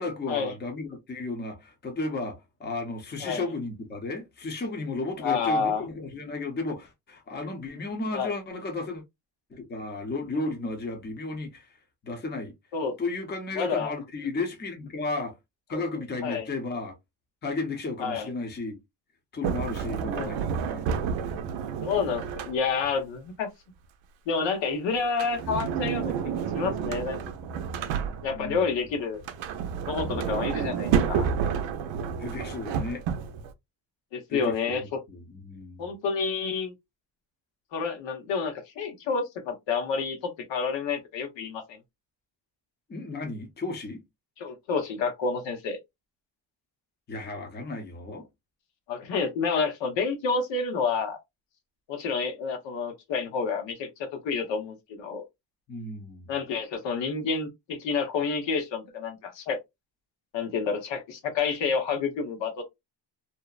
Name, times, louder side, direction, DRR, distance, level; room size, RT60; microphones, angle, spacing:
voice 1, 0.0-9.0 9.5-11.7 12.0-12.5 13.0-15.3 15.7-16.9 17.4-18.8 19.3-21.6 28.3-28.6 32.2-33.0 34.3-34.8 35.1-35.8 42.9-44.0 47.1-48.2 55.7-56.3, left 3 dB, 25° left, 0.7 m, -34 dB
voice 2, 5.2-5.8 8.1-8.3 12.7-12.9 13.6-13.9 15.7-15.8 16.2-16.5 18.0-18.3 20.1-20.3 21.8-23.5 24.3-27.2 28.2-29.2 29.9-31.3 34.1-34.8 35.8-36.7 37.7-41.8 44.4-45.8 48.9-51.2 51.9-55.2 56.3-59.6 60.3-62.6, left 5 dB, 75° left, 0.9 m, -29 dB
Sliding door, 19.4-23.0 25.0-28.6 29.1-33.5, right 7 dB, 90° right, 0.5 m, -30 dB
2.7 x 2.1 x 2.3 m
cardioid pair, 145°, 44 cm